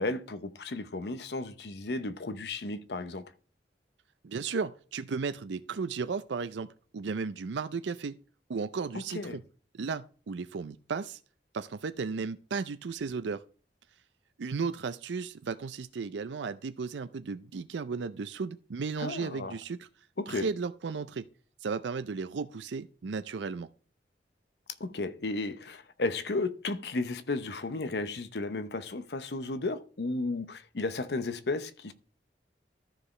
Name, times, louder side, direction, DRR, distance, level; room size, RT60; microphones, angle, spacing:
voice 1, 0.0-3.2 9.1-9.4 19.0-19.6 20.2-20.5 24.8-31.9, left 2 dB, 65° left, 0.8 m, -34 dB
voice 2, 4.2-6.7 6.9-8.2 8.5-9.4 9.7-11.2 11.5-13.4 14.4-19.9 20.3-21.3 21.6-23.7, right 5 dB, 85° right, 0.5 m, -35 dB
13.5 x 4.9 x 3.2 m
head